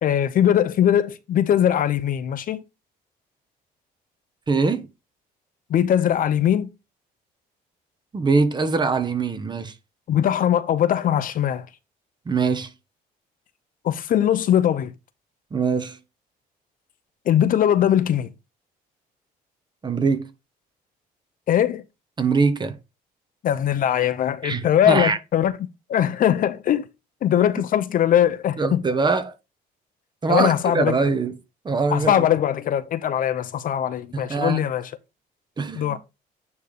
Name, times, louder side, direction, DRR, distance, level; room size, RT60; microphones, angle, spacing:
voice 1, 0.0-2.6 5.7-6.7 10.1-11.6 13.8-14.9 17.3-18.3 21.5-21.8 23.4-25.5 25.9-26.9 27.2-28.8 30.3-30.9 31.9-34.9 35.7-36.0, left 10 dB, 55° left, 0.8 m, -21 dB
voice 2, 4.5-4.9 8.1-9.7 12.3-12.7 15.5-16.0 19.8-20.3 22.2-22.8 24.4-25.2 28.6-29.3 30.2-31.3 31.6-32.2 34.1-34.6 35.6-36.0, right 4 dB, 25° right, 1.1 m, -23 dB
9.5 x 3.4 x 4.0 m
cardioid pair, 110°, 17 cm